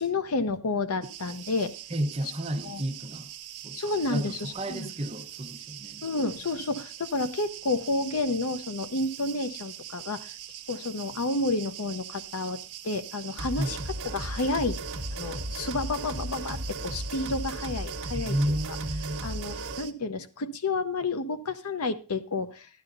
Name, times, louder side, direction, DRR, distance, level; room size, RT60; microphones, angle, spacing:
voice 1, 0.0-1.7 2.6-2.8 3.7-4.9 6.0-10.3 10.7-12.6 12.8-13.8 14.0-14.8 15.2-18.6 19.2-22.7, left 3 dB, 70° left, 0.7 m, -30 dB
sound 1, 1.0-19.9, right 12 dB, 85° right, 0.9 m, -43 dB
voice 2, 1.9-3.3 3.6-3.8 4.1-6.1 13.6-13.7 18.1-19.3, right 1 dB, 30° right, 0.9 m, -31 dB
sound 2, 13.4-19.9, right 1 dB, 60° right, 1.1 m, -35 dB
12.5 x 11.0 x 2.6 m
head